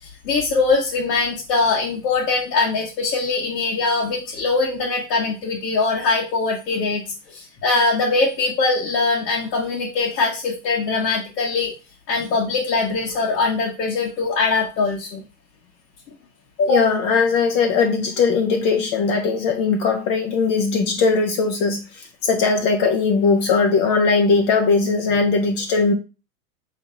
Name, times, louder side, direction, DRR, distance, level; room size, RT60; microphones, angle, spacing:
voice 1, 0.0-7.0 7.3-11.7 12.1-15.2 16.6-16.8, left 3 dB, 80° left, -3 dB, 1.4 m, -22 dB
voice 2, 16.7-21.8 22.2-25.9, left 4 dB, 35° left, 4 dB, 0.5 m, -19 dB
4.3 x 3.2 x 3.6 m, 0.32 s
hypercardioid pair, 125°, 49 cm